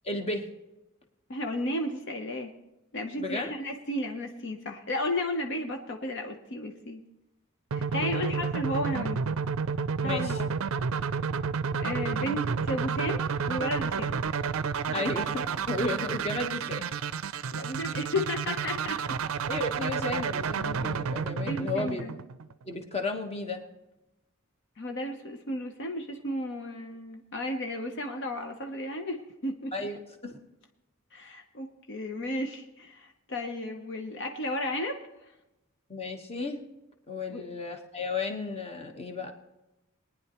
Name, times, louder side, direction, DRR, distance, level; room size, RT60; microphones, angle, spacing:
voice 1, 0.0-0.5 3.2-3.5 7.9-8.3 10.0-10.4 14.9-16.9 19.5-22.0 22.6-23.6 29.7-30.0 30.2-30.4 35.9-36.6 37.1-39.3, left 2 dB, 30° left, 4 dB, 1.2 m, -33 dB
voice 2, 1.3-2.5 2.9-7.0 7.7-9.2 10.0-10.5 11.8-14.2 14.9-15.1 17.5-19.0 21.4-22.1 24.8-29.9 31.1-35.0 37.3-37.4, left 1 dB, 55° left, 4 dB, 0.8 m, -33 dB
sound 1, 7.7-22.6, right 6 dB, 70° right, 0.5 m, -31 dB
21.0 x 9.9 x 3.0 m, 0.95 s
head